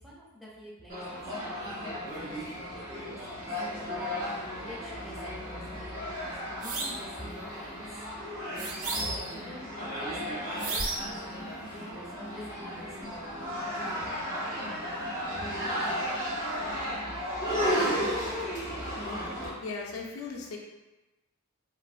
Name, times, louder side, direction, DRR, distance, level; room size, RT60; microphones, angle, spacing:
voice 1, 0.0-3.8 4.6-6.2 6.6-8.1 8.8-10.4 11.0-14.4 15.3-15.5, equal, ahead, -6 dB, 0.4 m, -47 dB
sound 1, 0.9-19.5, equal, 90° right, 1.3 m, -34 dB
sound 2, 6.6-7.1 8.6-9.4 10.6-11.2, right 3 dB, 60° right, 0.4 m, -33 dB
voice 2, 19.3-20.6, left 4 dB, 65° left, -1 dB, 0.4 m, -38 dB
3.1 x 2.0 x 2.3 m, 1.1 s
head